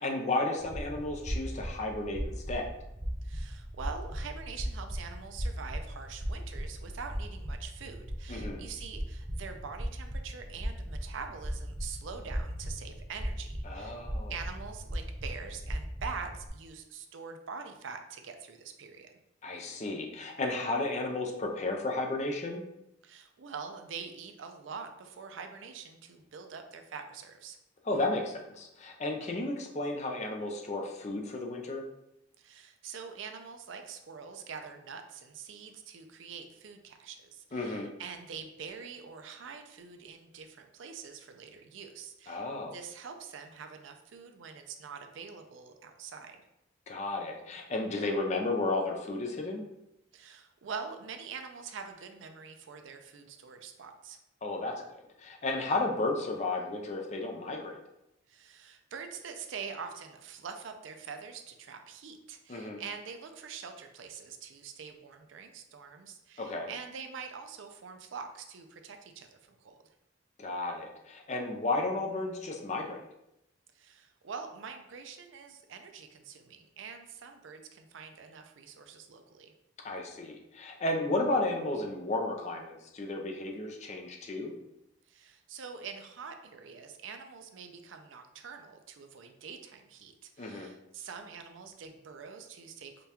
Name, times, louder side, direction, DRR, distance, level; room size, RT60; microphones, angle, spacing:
voice 1, 0.0-2.7 8.3-8.6 13.7-14.3 19.4-22.6 27.9-31.8 37.5-37.9 42.3-42.7 46.9-49.6 54.4-54.7 55.2-57.8 62.5-62.8 66.4-66.7 70.4-73.0 79.8-84.5 90.4-90.7, left 2 dB, 35° left, 2 dB, 0.5 m, -33 dB
sound 1, 0.6-16.5, equal, 20° right, 0.5 m, -38 dB
voice 2, 3.2-14.0 14.3-19.1 23.0-27.6 32.4-46.4 50.1-54.2 58.3-69.3 69.6-69.8 73.7-79.5 85.1-93.1, right 6 dB, 75° right, 6 dB, 0.4 m, -44 dB
5.1 x 2.3 x 2.8 m, 0.86 s
head